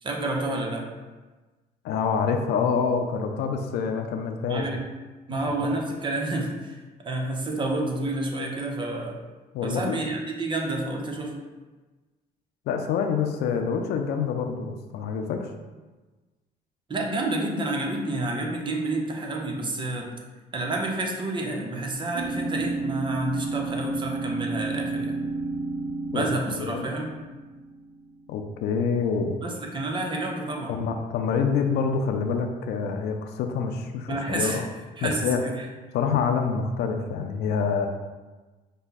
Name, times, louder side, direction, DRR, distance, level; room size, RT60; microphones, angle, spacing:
voice 1, 0.0-0.8 4.5-4.8 5.3-9.2 9.6-11.4 16.9-20.1 20.5-25.2 26.1-27.1 29.4-30.8 34.1-34.6 35.0-35.6, right 2 dB, 30° right, 0 dB, 0.8 m, -29 dB
voice 2, 1.8-4.6 9.5-10.0 12.7-15.5 26.1-26.3 26.5-26.9 28.3-29.4 30.7-34.6 35.0-35.4 35.9-37.9, left 6 dB, 75° left, 5 dB, 0.5 m, -26 dB
sound 1, 22.1-27.9, right 3 dB, 65° right, 0.7 m, -31 dB
5.3 x 2.2 x 4.0 m, 1.2 s
cardioid pair, 110°, 17 cm